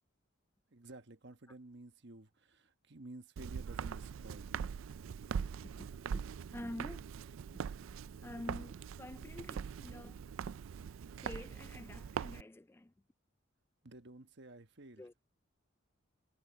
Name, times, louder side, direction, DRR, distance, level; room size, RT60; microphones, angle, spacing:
voice 1, 0.7-4.7 13.8-15.0, right 2 dB, 60° right, 1.3 m, -53 dB
Walk footsteps, 3.4-12.4, right 7 dB, 80° right, 0.4 m, -42 dB
voice 2, 5.6-6.3 6.5-7.0 8.2-10.2 11.2-12.9 15.0-15.1, left 1 dB, 10° left, 0.3 m, -48 dB
head